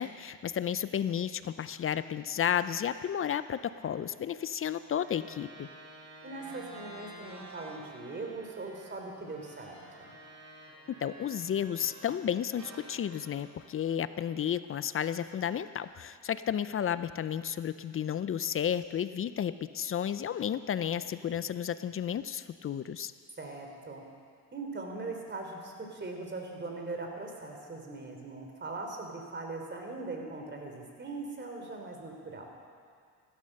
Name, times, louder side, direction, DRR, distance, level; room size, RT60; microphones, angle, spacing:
voice 1, 0.0-5.7 11.0-23.1, left 9 dB, 35° left, 14 dB, 0.5 m, -32 dB
sound 1, 4.8-12.2 12.6-15.0, right 1 dB, 50° right, 4.1 m, -51 dB
voice 2, 6.2-10.1 23.4-24.0 24.5-32.4, right 3 dB, 30° right, 2 dB, 3.3 m, -40 dB
15.5 x 12.5 x 6.6 m, 2.1 s
cardioid pair, 90°, 37 cm